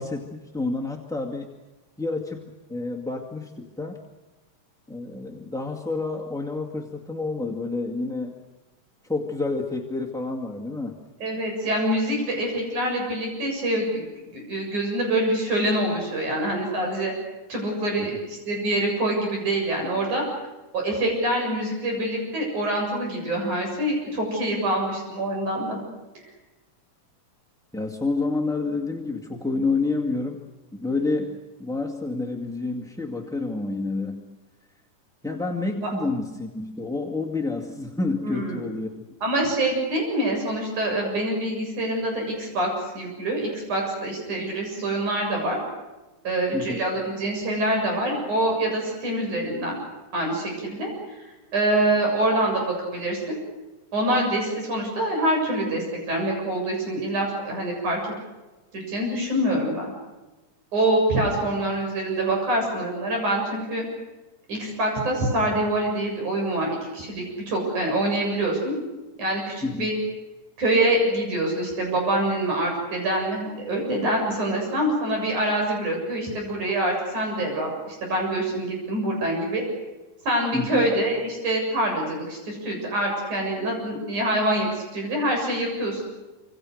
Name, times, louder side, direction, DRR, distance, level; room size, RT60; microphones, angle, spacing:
voice 1, 0.0-1.5 2.0-2.4 2.7-4.0 4.9-8.4 9.0-11.0 27.7-30.4 30.7-34.2 35.2-38.9 46.5-46.9 69.6-69.9 80.5-80.9, left 3 dB, ahead, 2 dB, 1.3 m, -29 dB
voice 2, 11.2-14.0 14.3-17.1 17.5-20.2 20.7-25.8 35.8-35.9 38.2-38.7 39.2-45.6 46.2-49.8 50.1-50.9 51.5-53.4 53.9-58.0 58.7-59.9 60.7-63.8 64.5-68.8 69.2-70.0 70.6-79.6 80.3-86.0, right 1 dB, 75° right, 1 dB, 8.9 m, -25 dB
26.5 x 26.0 x 6.6 m, 1.1 s
omnidirectional pair, 3.5 m